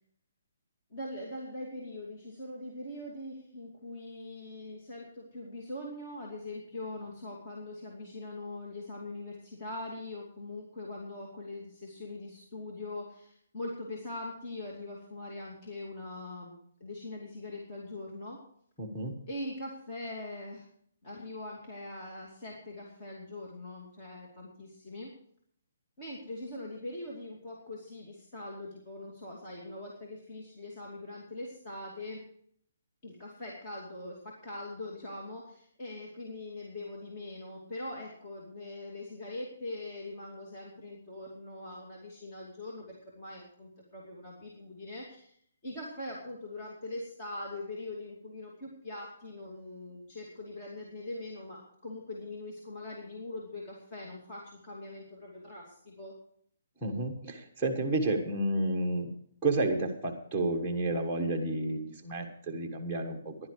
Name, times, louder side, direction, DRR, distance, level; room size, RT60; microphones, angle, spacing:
voice 1, 0.9-16.5 16.8-18.4 19.3-20.7 21.0-25.1 26.0-32.2 33.0-45.4 45.6-56.2, left 2 dB, 25° left, -3 dB, 2.6 m, -42 dB
voice 2, 18.8-19.2 56.8-59.1 59.4-63.5, right 2 dB, ahead, -1 dB, 1.4 m, -31 dB
15.5 x 11.0 x 4.8 m, 0.62 s
hypercardioid pair, 170°, 0 cm